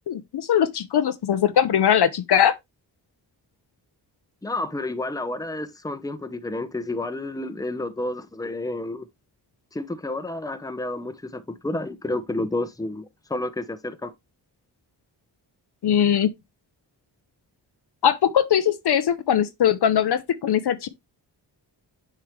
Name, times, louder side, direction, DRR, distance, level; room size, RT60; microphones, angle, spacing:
voice 1, 0.1-2.5 15.8-16.3 18.0-20.9, left 9 dB, 60° left, 0.7 m, -21 dB
voice 2, 4.4-9.1 9.7-14.1, left 2 dB, 10° left, 0.8 m, -30 dB
7.3 x 4.5 x 3.2 m
supercardioid pair, 45°, 45 cm